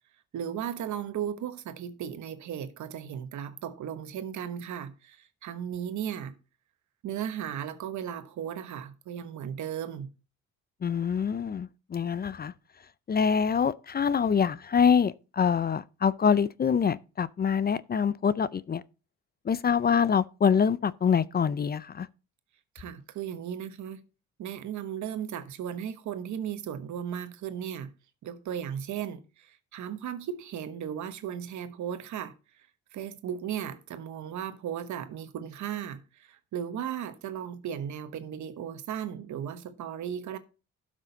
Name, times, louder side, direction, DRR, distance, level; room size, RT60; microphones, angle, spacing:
voice 1, 0.3-6.4 7.0-10.1 22.7-24.0 24.4-27.9 28.2-32.3 32.9-40.4, right 9 dB, 75° right, 1.2 m, -36 dB
voice 2, 10.8-12.5 13.1-18.8 19.5-22.1, left 7 dB, 30° left, 0.5 m, -25 dB
12.0 x 6.3 x 4.0 m
cardioid pair, 90°, 30 cm